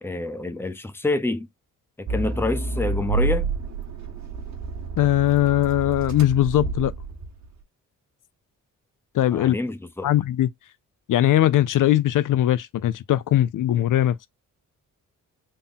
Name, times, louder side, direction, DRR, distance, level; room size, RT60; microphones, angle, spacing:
voice 1, 0.0-1.5 2.0-3.5 9.3-10.1, left 2 dB, 5° left, 0.7 m, -27 dB
Accelerating revving vroom, 2.1-7.5, right 3 dB, 60° right, 1.3 m, -29 dB
voice 2, 5.0-6.9 9.1-9.6 10.0-10.5 11.1-14.3, left 13 dB, 70° left, 0.5 m, -20 dB
3.7 x 2.2 x 3.9 m
cardioid pair, 80°, 33 cm